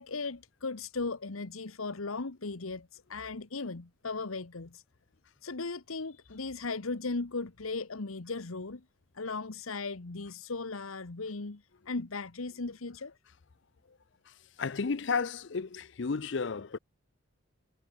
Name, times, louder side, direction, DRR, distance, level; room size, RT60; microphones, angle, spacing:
voice 1, 0.0-4.8 5.4-8.8 9.1-13.1, left 3 dB, 85° left, 1.2 m, -37 dB
voice 2, 14.3-16.8, left 5 dB, 60° left, 0.6 m, -33 dB
head